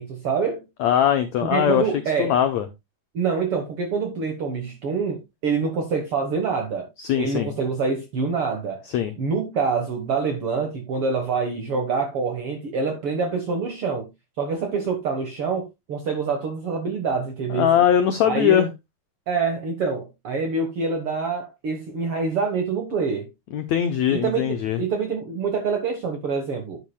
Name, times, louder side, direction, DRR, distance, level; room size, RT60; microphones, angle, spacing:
voice 1, 0.0-0.6 1.4-2.4 3.1-6.9 7.2-8.8 9.2-14.1 14.4-17.7 18.2-18.7 19.3-23.3 24.1-26.8, right 5 dB, 60° right, 1.4 m, -26 dB
voice 2, 0.8-1.8 2.2-2.7 7.0-7.5 8.9-9.1 17.5-18.7 23.5-24.8, left 10 dB, 85° left, 1.6 m, -21 dB
10.5 x 9.3 x 2.2 m
omnidirectional pair, 4.3 m